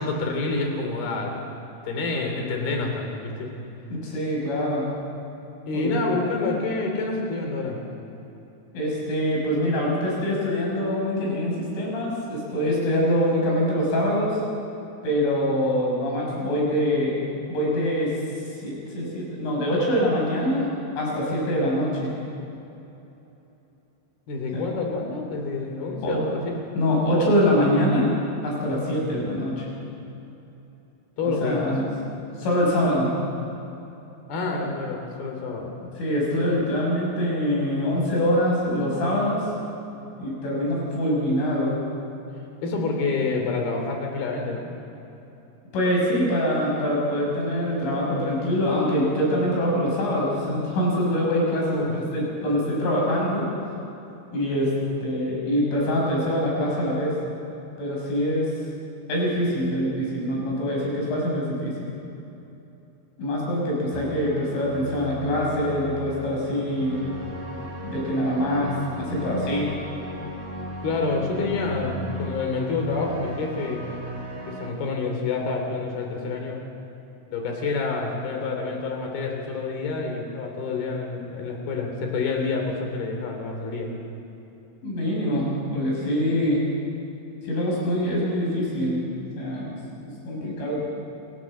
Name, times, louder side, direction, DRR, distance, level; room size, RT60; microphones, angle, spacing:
voice 1, 0.0-1.6 1.8-3.5 5.7-7.8 24.3-26.5 31.2-31.7 34.3-35.7 42.6-44.7 51.6-51.9 70.8-73.9 74.5-76.6 77.3-83.9, left 3 dB, 55° left, 2 dB, 4.9 m, -28 dB
voice 2, 3.9-4.9 5.7-6.0 8.7-14.4 15.0-17.2 17.5-18.1 18.6-20.7 21.0-22.1 24.5-24.6 26.0-26.2 26.8-28.1 28.4-29.6 31.2-31.9 32.4-33.3 36.0-39.5 40.2-41.7 45.7-53.5 54.3-54.7 55.0-57.1 57.8-58.5 59.1-61.9 63.2-67.0 67.8-69.7 84.8-86.6 87.4-89.8 90.2-90.8, equal, 80° left, -3 dB, 8.5 m, -24 dB
sound 1, 63.9-74.7, equal, 45° right, 5.6 m, -36 dB
28.0 x 14.0 x 7.6 m, 3.0 s
omnidirectional pair, 5.5 m